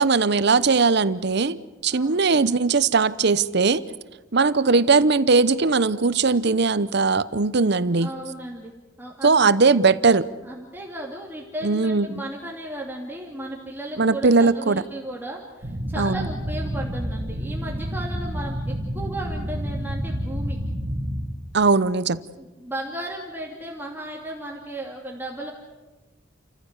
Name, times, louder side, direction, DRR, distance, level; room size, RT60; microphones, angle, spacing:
voice 1, 0.0-3.8 4.3-8.1 9.2-10.3 11.6-12.2 14.0-14.8 16.0-16.3 21.5-22.2, right 4 dB, 60° right, 16 dB, 0.8 m, -19 dB
voice 2, 1.9-2.2 8.0-8.7 9.0-9.4 10.4-20.6 22.4-25.5, right 1 dB, 10° right, -2 dB, 2.6 m, -35 dB
sound 1, 15.6-21.2, equal, 40° right, 2.9 m, -29 dB
29.5 x 14.5 x 8.2 m, 1.2 s
head